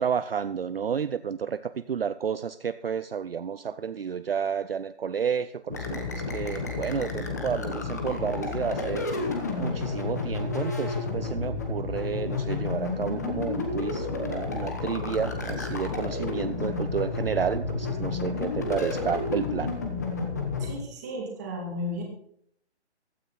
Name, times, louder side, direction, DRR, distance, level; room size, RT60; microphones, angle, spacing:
voice 1, 0.0-9.3 9.6-19.8, right 7 dB, 55° right, 13 dB, 0.6 m, -31 dB
sound 1, 5.7-20.7, left 3 dB, 15° left, 1.1 m, -31 dB
voice 2, 20.6-22.0, left 1 dB, 15° right, 0 dB, 2.5 m, -34 dB
15.5 x 12.5 x 4.1 m, 0.65 s
hypercardioid pair, 180°, 34 cm